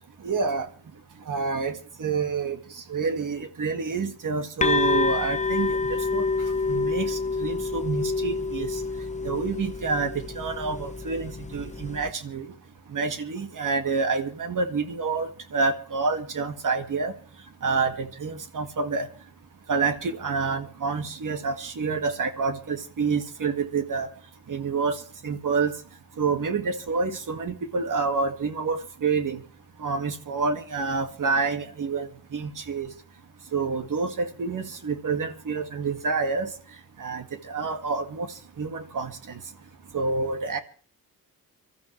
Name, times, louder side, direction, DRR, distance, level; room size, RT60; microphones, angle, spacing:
voice 1, 0.2-0.7 1.3-2.6 2.9-6.2 6.7-8.8 9.2-12.5 12.9-17.1 17.6-19.1 19.7-24.1 24.5-25.0 25.2-25.7 26.2-29.4 29.8-32.9 33.5-36.5 37.0-38.3 38.6-39.4 39.9-40.6, right 4 dB, 55° right, 7 dB, 2.1 m, -28 dB
sound 1, 4.6-12.1, left 4 dB, 20° left, 0.7 m, -28 dB
25.5 x 13.5 x 3.2 m, 0.40 s
cardioid pair, 80°, 36 cm